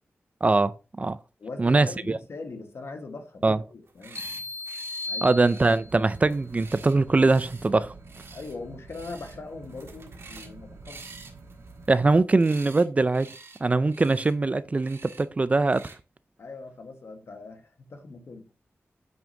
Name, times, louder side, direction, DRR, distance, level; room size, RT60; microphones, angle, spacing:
voice 1, 0.4-1.2 1.6-2.2 3.4-3.6 5.2-7.9 11.9-13.3 13.6-15.9, right 3 dB, 30° right, 0.3 m, -22 dB
voice 2, 1.4-4.5 5.1-5.4 8.3-11.0 16.4-18.5, left 3 dB, 70° left, 1.3 m, -41 dB
sound 1, 3.8-4.4 4.7-5.1 5.4-7.7 8.0-8.5 8.9-9.4 9.6-10.5 10.8-12.8 13.1-13.6 13.9-14.3 14.8-15.2 15.6-16.0, right 4 dB, 65° right, 1.6 m, -48 dB
sound 2, 4.2-6.1, left 2 dB, 35° left, 1.3 m, -36 dB
sound 3, 5.8-12.2, right 3 dB, 90° right, 1.2 m, -48 dB
8.6 x 6.1 x 2.6 m
wide cardioid pair, 115°, 5 cm